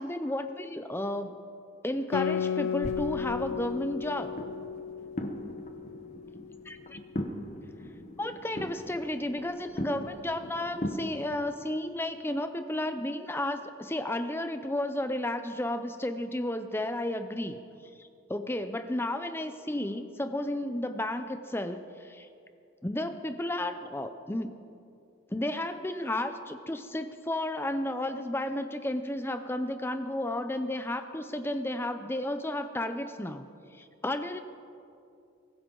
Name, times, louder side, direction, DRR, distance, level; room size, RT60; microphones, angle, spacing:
voice 1, 0.0-1.4 1.8-4.4 6.7-7.0 8.2-17.6 18.0-22.3 22.8-24.6 25.3-33.4 33.7-34.4, left 1 dB, 10° left, 9 dB, 0.5 m, -33 dB
Guitar, 2.1-7.1, left 7 dB, 75° left, 0.3 m, -34 dB
sound 1, 2.8-11.2, equal, 35° left, 1.0 m, -40 dB
23.5 x 15.0 x 3.9 m, 2.5 s
head